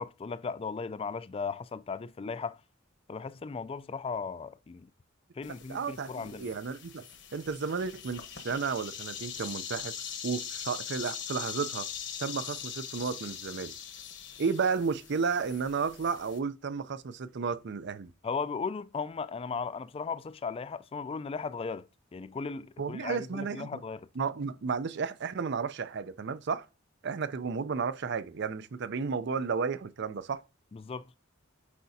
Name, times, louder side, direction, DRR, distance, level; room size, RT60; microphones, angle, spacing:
voice 1, 0.0-2.6 3.1-4.9 5.4-6.5 18.2-24.1 30.7-31.1, left 5 dB, 30° left, 0.3 m, -36 dB
sound 1, 5.4-16.4, left 8 dB, 60° left, 1.1 m, -42 dB
voice 2, 5.7-7.1 7.3-9.9 10.2-11.9 12.2-13.7 14.4-18.1 22.8-23.8 24.2-26.6 27.0-30.4, right 5 dB, 60° right, 0.5 m, -33 dB
8.3 x 4.8 x 2.7 m
head